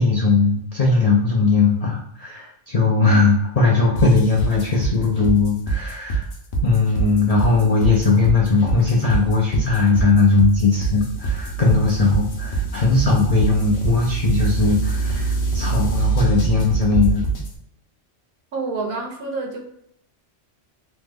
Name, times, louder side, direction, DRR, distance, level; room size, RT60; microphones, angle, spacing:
voice 1, 0.0-6.3 6.6-17.2, left 3 dB, 80° left, -2 dB, 0.3 m, -18 dB
sound 1, 4.0-17.5, right 5 dB, 55° left, 0.8 m, -24 dB
voice 2, 18.5-19.6, right 3 dB, 60° right, 1 dB, 0.8 m, -27 dB
3.1 x 2.0 x 3.4 m, 0.71 s
omnidirectional pair, 1.3 m